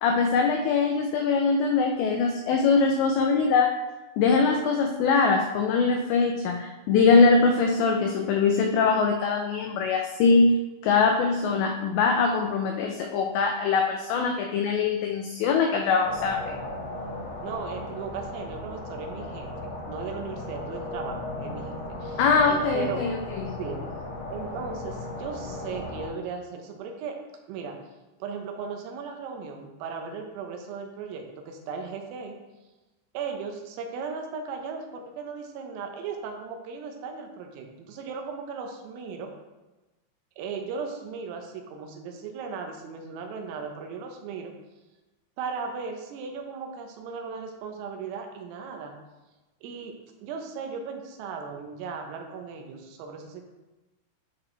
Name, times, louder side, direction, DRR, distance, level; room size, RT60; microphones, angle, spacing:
voice 1, 0.0-3.7 4.2-16.6 22.2-23.6, left 4 dB, 90° left, 3 dB, 2.5 m, -22 dB
sound 1, 16.0-26.1, left 2 dB, 50° left, 2.0 m, -36 dB
voice 2, 17.4-23.1 23.5-23.9 24.3-27.2 27.5-27.8 28.2-32.4 33.2-39.3 40.4-44.5 45.4-49.0 49.6-53.5, right 5 dB, 85° right, 3 dB, 3.7 m, -37 dB
11.0 x 5.9 x 3.3 m, 1.1 s
omnidirectional pair, 5.8 m